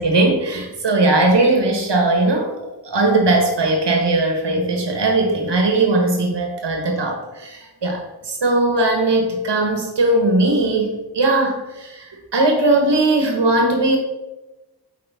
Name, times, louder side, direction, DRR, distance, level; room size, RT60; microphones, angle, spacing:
voice 1, 0.0-2.6 2.8-14.0, right 2 dB, 85° right, 2 dB, 1.2 m, -19 dB
7.7 x 4.8 x 3.5 m, 1.0 s
wide cardioid pair, 60°, 41 cm